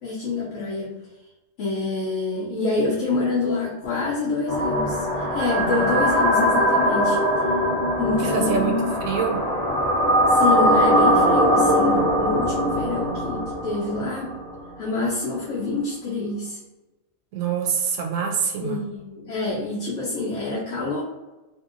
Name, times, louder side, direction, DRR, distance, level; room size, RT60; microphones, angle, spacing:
voice 1, 0.0-0.9 1.6-7.2 8.0-8.9 10.3-14.3 14.8-16.6 18.6-21.0, left 3 dB, 70° left, -5 dB, 0.9 m, -26 dB
sound 1, 4.5-14.6, equal, 40° left, 0.5 m, -21 dB
voice 2, 8.2-9.4 17.3-18.8, right 6 dB, 75° right, 2 dB, 0.9 m, -25 dB
2.8 x 2.6 x 2.4 m, 1.1 s
omnidirectional pair, 1.4 m